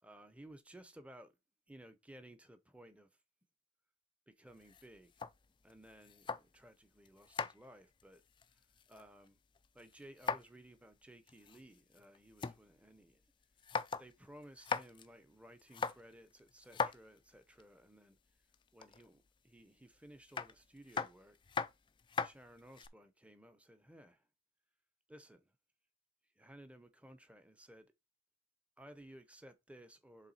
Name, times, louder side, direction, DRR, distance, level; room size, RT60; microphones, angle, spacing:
voice 1, 0.0-1.3 1.7-3.1 4.3-5.1 5.6-8.2 8.9-9.4 9.7-13.2 14.0-18.2 18.7-21.4 22.2-24.2 25.1-25.4 26.4-27.9 28.8-30.3, right 1 dB, 5° right, 0.7 m, -57 dB
sound 1, 4.5-6.7 7.1-9.3 9.6-10.7 10.9-11.0 11.3-12.6 13.0-13.1 13.4-14.1 14.4-15.1 15.6-17.6 18.5-19.1 20.3-22.9, left 5 dB, 20° left, 0.3 m, -40 dB
7.2 x 3.6 x 4.0 m
head